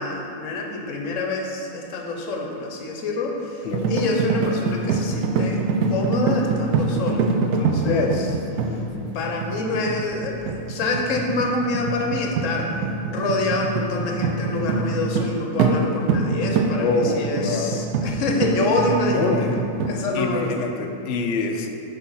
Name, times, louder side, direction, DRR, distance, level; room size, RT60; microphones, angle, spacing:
voice 1, 0.0-3.6 3.9-5.6 5.9-8.1 9.1-12.8 13.0-19.3 19.9-20.5, left 2 dB, 60° left, 1 dB, 1.0 m, -26 dB
sound 1, 3.7-15.3 15.6-15.8 16.1-19.9, right 4 dB, 75° right, 1.0 m, -24 dB
voice 2, 7.9-8.3 8.7-9.2 16.8-17.8 19.1-19.6 20.1-21.7, left 3 dB, 90° left, 4 dB, 0.5 m, -25 dB
6.3 x 3.5 x 5.4 m, 2.7 s
omnidirectional pair, 1.7 m